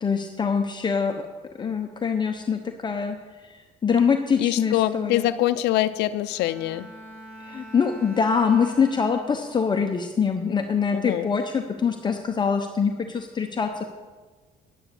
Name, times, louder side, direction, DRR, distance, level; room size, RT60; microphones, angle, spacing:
voice 1, 0.0-1.3 1.6-3.2 3.5-5.3 7.4-13.8, left 6 dB, 25° left, 5 dB, 0.8 m, -24 dB
voice 2, 4.4-6.9 10.9-11.3, left 14 dB, 85° left, 13 dB, 0.6 m, -24 dB
Bowed string instrument, 6.2-9.8 10.3-10.6, right 1 dB, 10° right, 4.5 m, -44 dB
10.0 x 9.9 x 6.9 m, 1.3 s
cardioid pair, 110°, 17 cm